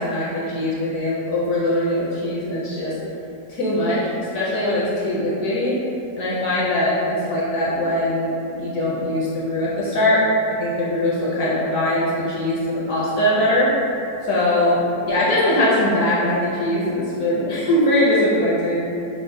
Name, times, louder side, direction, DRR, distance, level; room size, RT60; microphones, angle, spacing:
voice 1, 0.0-2.9 3.5-4.0 4.3-5.8 6.2-8.3 8.6-10.2 10.6-13.7 14.3-18.9, left 1 dB, 65° left, -7 dB, 0.9 m, -21 dB
5.9 x 2.1 x 2.5 m, 2.8 s
omnidirectional pair, 1.9 m